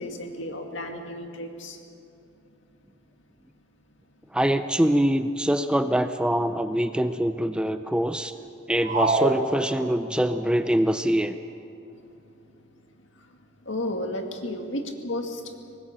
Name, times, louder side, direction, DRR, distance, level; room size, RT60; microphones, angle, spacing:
voice 1, 0.0-1.8 13.2-13.3 13.6-15.4, left 1 dB, 65° left, 4 dB, 2.1 m, -33 dB
voice 2, 4.3-8.3 8.7-11.4, right 1 dB, 5° right, 9 dB, 0.5 m, -24 dB
sound 1, 8.8-10.3, right 3 dB, 35° right, 1.2 m, -26 dB
24.0 x 19.5 x 6.5 m, 2.7 s
head